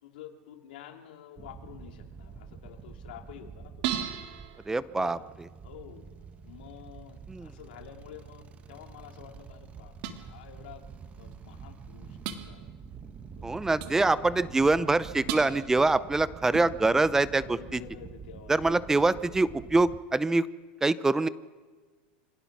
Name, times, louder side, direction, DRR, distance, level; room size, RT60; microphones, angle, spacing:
voice 1, 0.0-3.7 4.1-4.2 5.0-5.3 5.6-6.0 6.4-10.8 11.2-12.2 12.4-12.7 13.4-14.5 17.3-18.6, left 10 dB, 80° left, 3 dB, 2.6 m, -49 dB
sound 1, 1.4-20.0, right 6 dB, 25° right, 1.3 m, -47 dB
sound 2, 3.8-5.6 10.0-10.2 11.3-11.4 12.2-12.4 13.8-14.0 15.3-15.6 16.5-17.1 18.9-19.2, right 10 dB, 65° right, 2.1 m, -36 dB
voice 2, 4.7-5.2 7.3-7.5 13.4-17.4 17.7-17.8 18.5-20.5 20.8-21.3, right 3 dB, 10° right, 17 dB, 0.6 m, -24 dB
25.5 x 17.5 x 6.0 m, 1.4 s
supercardioid pair, 125°, 5 cm